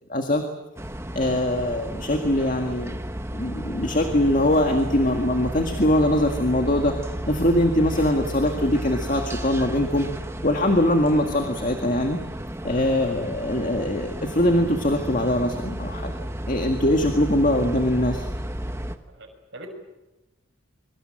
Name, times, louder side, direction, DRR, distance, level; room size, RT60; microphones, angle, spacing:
voice 1, 0.1-0.4 1.1-3.0 3.3-6.9 7.3-10.1 10.4-12.2 12.6-16.2 16.5-18.3, left 1 dB, 40° left, 5 dB, 1.9 m, -22 dB
sound 1, 0.8-19.0, equal, 15° right, 1.2 m, -33 dB
voice 2, 19.1-19.7, right 2 dB, 60° right, 2 dB, 6.2 m, -44 dB
25.0 x 24.0 x 7.7 m, 1.0 s
head